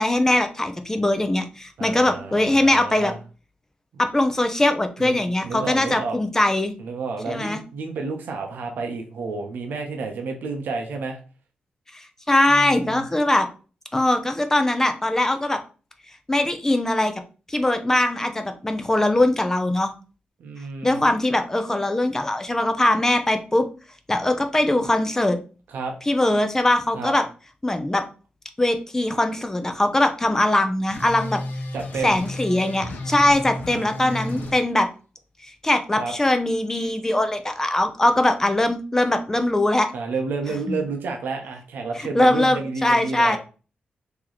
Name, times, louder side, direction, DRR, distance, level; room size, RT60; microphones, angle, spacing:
voice 1, 0.0-3.1 4.0-6.7 7.3-7.6 11.9-13.5 13.9-15.6 16.3-17.1 17.5-19.9 20.8-23.6 24.1-25.4 26.1-27.2 27.6-28.0 28.6-31.4 32.0-34.9 35.4-39.9 40.7-40.8 42.0-43.4, left 1 dB, 15° left, 7 dB, 0.6 m, -21 dB
voice 2, 1.8-3.2 5.0-6.2 6.8-11.2 12.5-13.0 20.4-21.0 25.7-25.9 26.9-27.1 31.7-32.2 33.7-34.5 36.0-36.1 39.9-43.4, right 4 dB, 90° right, 3 dB, 0.7 m, -30 dB
sound 1, 30.9-34.5, left 1 dB, 80° left, 0.8 m, -33 dB
3.1 x 3.0 x 3.9 m, 0.35 s
cardioid pair, 100°, 3 cm